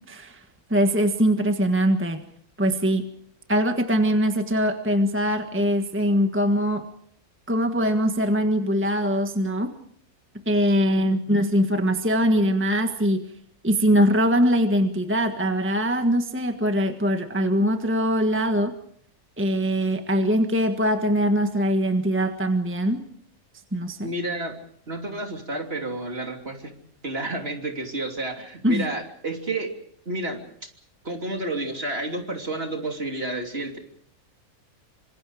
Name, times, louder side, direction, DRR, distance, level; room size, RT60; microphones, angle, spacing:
voice 1, 0.1-0.4 0.7-2.2 2.6-3.1 3.5-6.8 7.5-9.7 10.5-13.3 13.6-18.8 19.4-23.1 23.7-24.1 28.6-28.9, equal, 10° right, 6 dB, 1.4 m, -22 dB
voice 2, 24.0-24.6 24.9-26.7 27.0-29.7 30.0-30.4 31.0-33.8, right 2 dB, 40° right, 3 dB, 3.4 m, -30 dB
27.0 x 26.0 x 5.0 m, 0.65 s
omnidirectional pair, 1.5 m